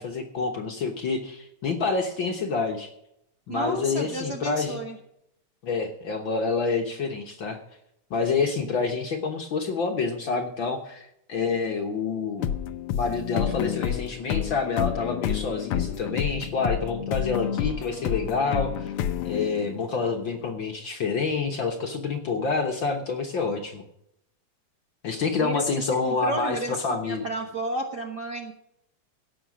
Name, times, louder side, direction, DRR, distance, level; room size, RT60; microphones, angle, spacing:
voice 1, 0.0-2.9 3.5-4.8 5.6-7.6 8.1-12.5 12.9-18.9 19.2-23.8 25.0-27.2, left 4 dB, 55° left, 3 dB, 1.5 m, -28 dB
voice 2, 3.5-5.0 25.4-28.5, right 1 dB, 55° right, 2 dB, 1.1 m, -32 dB
sound 1, 12.4-20.0, left 9 dB, 75° left, 1.3 m, -29 dB
17.0 x 7.2 x 6.1 m, 0.78 s
omnidirectional pair, 3.3 m